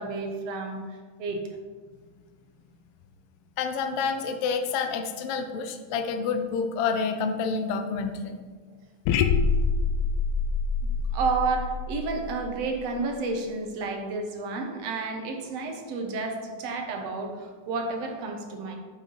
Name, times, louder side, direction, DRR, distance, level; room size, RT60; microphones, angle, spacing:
voice 1, 0.0-1.4 11.1-18.8, right 3 dB, 65° right, 3 dB, 2.1 m, -31 dB
voice 2, 3.6-8.4, left 5 dB, 70° left, 6 dB, 1.4 m, -28 dB
sound 1, 9.1-13.2, left 5 dB, 90° left, 2.1 m, -26 dB
8.9 x 6.1 x 5.4 m, 1.5 s
omnidirectional pair, 3.4 m